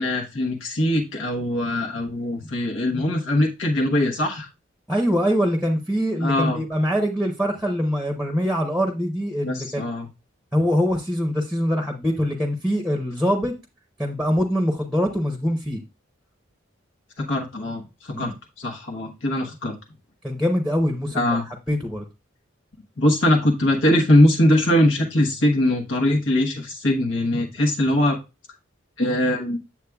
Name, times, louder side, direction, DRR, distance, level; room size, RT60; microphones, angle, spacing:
voice 1, 0.0-4.5 6.2-6.6 9.4-10.1 17.2-19.7 21.1-21.5 23.0-28.2 29.0-29.6, left 1 dB, 75° left, 0 dB, 1.1 m, -21 dB
voice 2, 4.9-9.9 10.5-13.5 14.0-15.8 18.1-18.3 20.2-21.4 21.7-22.1, equal, ahead, 3 dB, 0.8 m, -23 dB
8.2 x 7.4 x 2.3 m, 0.26 s
head